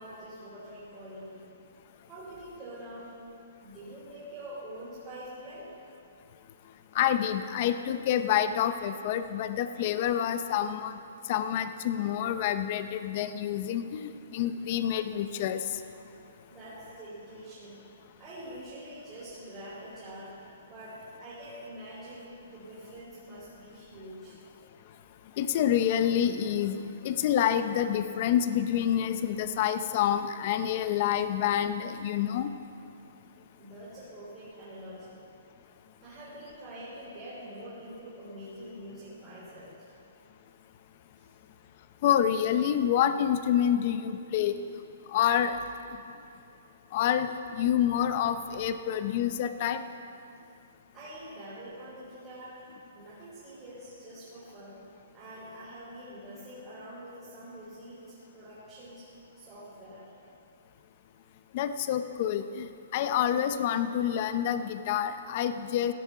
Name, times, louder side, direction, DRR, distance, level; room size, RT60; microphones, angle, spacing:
voice 1, 0.0-1.5 2.1-3.1 3.6-5.7 16.1-17.9 18.2-20.3 20.7-24.4 33.6-35.2 36.0-39.9 41.2-41.3 50.9-52.6 52.9-54.8 55.1-59.0 59.3-60.1, right 1 dB, 20° right, -10 dB, 3.4 m, -45 dB
voice 2, 6.9-11.0 11.3-15.6 25.4-32.5 42.0-44.6 45.1-45.5 46.9-49.8 61.5-62.7 62.9-65.9, left 10 dB, 35° left, 10 dB, 0.6 m, -27 dB
16.0 x 8.5 x 5.7 m, 2.6 s
hypercardioid pair, 165°, 0 cm